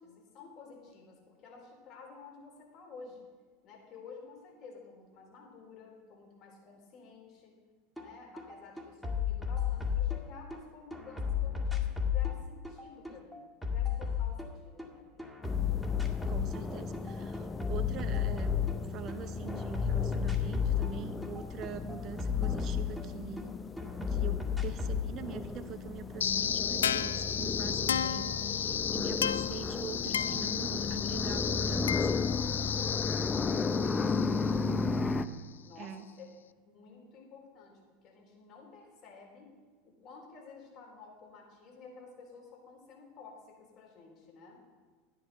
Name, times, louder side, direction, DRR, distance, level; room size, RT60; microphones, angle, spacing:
voice 1, 0.0-3.2 3.6-7.5 8.0-15.2 31.7-35.0 35.6-36.3 36.7-39.5 39.8-44.6, left 4 dB, 50° left, -1 dB, 4.4 m, -52 dB
sound 1, 8.0-8.1 8.4-10.6 10.9-14.9 15.2-16.7 16.9-19.2 19.5-23.5 23.8-25.1, left 8 dB, ahead, 2.0 m, -32 dB
sound 2, 15.4-35.3, left 4 dB, 20° left, 0.6 m, -35 dB
voice 2, 16.3-18.5 18.9-23.5 24.1-32.4 34.6-34.9 35.8-36.0, right 10 dB, 45° right, 10 dB, 1.0 m, -44 dB
sound 3, 26.2-35.2, left 8 dB, 80° left, 0.3 m, -33 dB
12.5 x 10.0 x 4.5 m, 1.5 s
hypercardioid pair, 85°, 0 cm